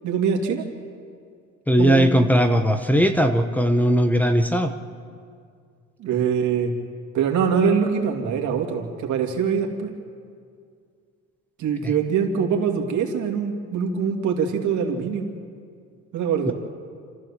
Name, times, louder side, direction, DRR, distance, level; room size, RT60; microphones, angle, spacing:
voice 1, 0.0-0.6 1.8-2.1 6.0-6.7 7.1-9.9 11.6-15.3 16.1-16.5, right 6 dB, 75° right, 2 dB, 2.6 m, -23 dB
voice 2, 1.7-4.7 11.8-11.9 16.5-16.6, equal, 5° left, 4 dB, 0.8 m, -19 dB
27.0 x 14.5 x 7.4 m, 2.2 s
cardioid pair, 145°, 29 cm